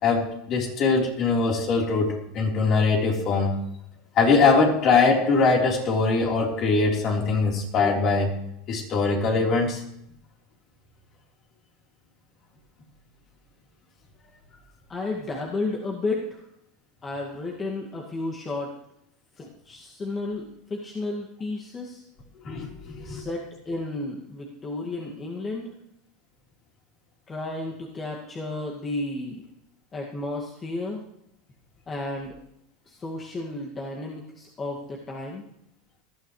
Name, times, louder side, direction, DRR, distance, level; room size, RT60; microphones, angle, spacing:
voice 1, 0.0-3.6 4.2-8.3 8.7-9.8 22.4-23.2, left 4 dB, 45° left, 0 dB, 3.9 m, -22 dB
voice 2, 14.9-16.4 17.0-18.7 19.4-22.0 23.0-25.7 27.3-29.4 29.9-31.0 31.9-32.4 32.9-35.4, left 2 dB, 25° left, -1 dB, 2.0 m, -32 dB
19.0 x 12.5 x 3.2 m, 0.78 s
supercardioid pair, 110°, 0 cm